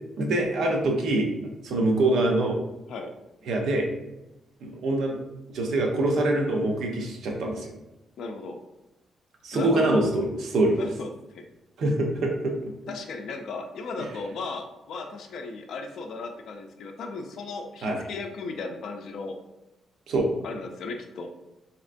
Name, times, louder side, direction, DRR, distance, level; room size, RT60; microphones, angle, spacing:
voice 1, 0.2-1.3 1.6-2.6 3.5-3.9 4.6-5.2 5.5-7.7 9.4-10.8 11.8-12.7 17.8-18.0 20.1-20.3, right 2 dB, 75° right, 0 dB, 0.8 m, -24 dB
voice 2, 8.2-8.6 9.5-10.1 10.8-11.4 12.9-19.4 20.4-21.3, left 3 dB, 70° left, 3 dB, 0.4 m, -36 dB
4.2 x 2.9 x 2.5 m, 0.94 s
cardioid pair, 120°, 0 cm